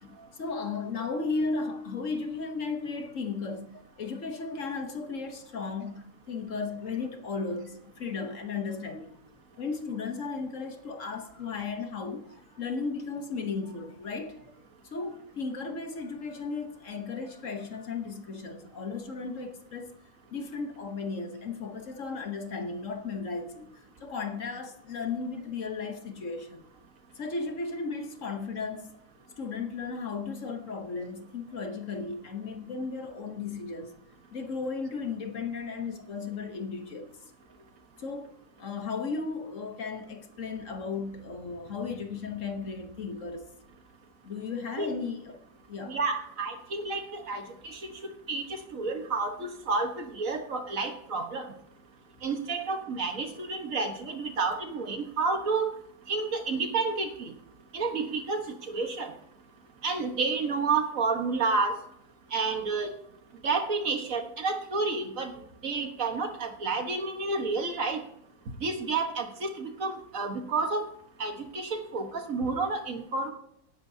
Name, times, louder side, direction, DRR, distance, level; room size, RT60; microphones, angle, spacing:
voice 1, 0.0-9.1 9.6-14.4 14.9-19.9 20.3-23.7 24.0-26.7 27.1-29.0 29.4-33.9 34.3-37.2 38.0-38.3 38.6-43.5 44.2-45.4 45.7-46.0, left 4 dB, 55° left, 1.4 m, -35 dB
voice 2, 45.9-48.0 48.3-51.5 52.2-55.7 56.1-57.3 57.7-59.1 59.8-61.8 62.3-62.9 63.4-65.3 65.6-68.0 68.6-70.9 71.2-73.3, right 4 dB, 55° right, 1.7 m, -30 dB
18.0 x 10.5 x 2.8 m
omnidirectional pair, 1.7 m